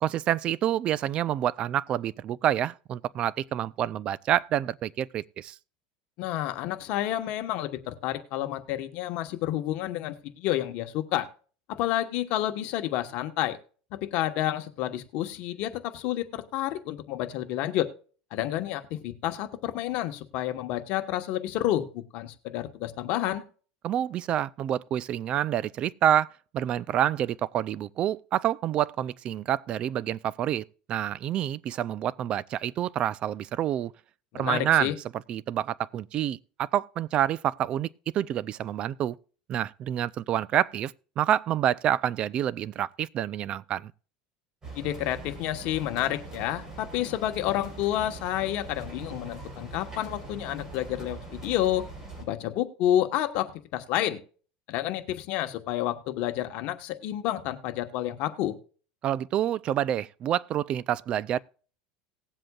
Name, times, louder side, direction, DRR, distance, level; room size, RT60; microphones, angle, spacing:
voice 1, 0.0-5.6 23.8-33.9 34.3-34.9 35.3-37.9 38.1-39.2 39.5-43.9 59.0-61.4, right 11 dB, 35° right, 0.4 m, -28 dB
voice 2, 6.2-11.3 11.7-13.6 14.1-17.9 18.3-21.9 22.1-23.4 34.3-34.9 44.8-51.9 52.2-54.2 54.7-58.5, left 13 dB, 55° left, 1.2 m, -29 dB
sound 1, 44.6-52.2, right 2 dB, 20° right, 4.1 m, -42 dB
19.0 x 7.7 x 2.4 m
supercardioid pair, 140°, 3 cm